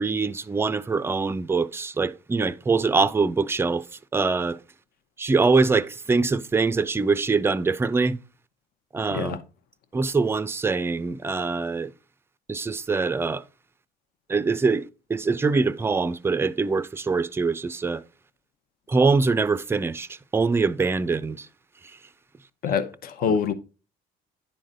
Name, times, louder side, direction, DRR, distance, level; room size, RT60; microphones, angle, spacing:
voice 1, 0.0-3.9 4.1-4.6 5.2-8.2 8.9-9.4 9.9-11.9 12.5-13.4 14.3-18.0 18.9-20.1 20.3-21.5, right 4 dB, 15° right, 0.4 m, -23 dB
voice 2, 9.1-9.4 22.6-23.5, left 6 dB, 60° left, 0.8 m, -25 dB
10.0 x 3.8 x 3.8 m
cardioid pair, 110°, 17 cm